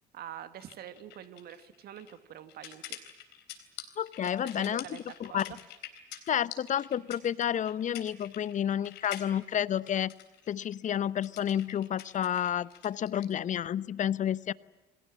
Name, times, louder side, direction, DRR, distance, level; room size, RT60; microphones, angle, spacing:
voice 1, 0.1-3.0 4.4-5.4 6.0-6.1, right 11 dB, 50° right, 11 dB, 1.8 m, -46 dB
sound 1, 0.6-13.3, left 12 dB, 60° left, 3.7 m, -47 dB
voice 2, 4.0-5.5 6.3-10.1 10.5-14.5, left 9 dB, 40° left, 20 dB, 0.8 m, -30 dB
28.5 x 24.5 x 7.5 m, 1.1 s
figure-of-eight pair, 50°, 20 cm